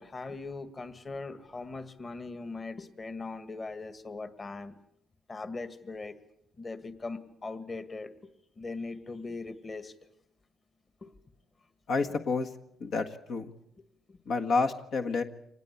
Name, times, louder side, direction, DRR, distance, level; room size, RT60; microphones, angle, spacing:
voice 1, 0.0-4.7 5.3-6.2 6.6-8.3 8.6-9.9 11.0-11.1 14.1-14.2, left 3 dB, 30° left, 12 dB, 1.9 m, -40 dB
voice 2, 11.9-12.5 12.8-13.5 14.3-15.2, left 4 dB, 70° left, 5 dB, 1.6 m, -29 dB
25.0 x 19.5 x 8.4 m, 0.77 s
cardioid pair, 90°, 0 cm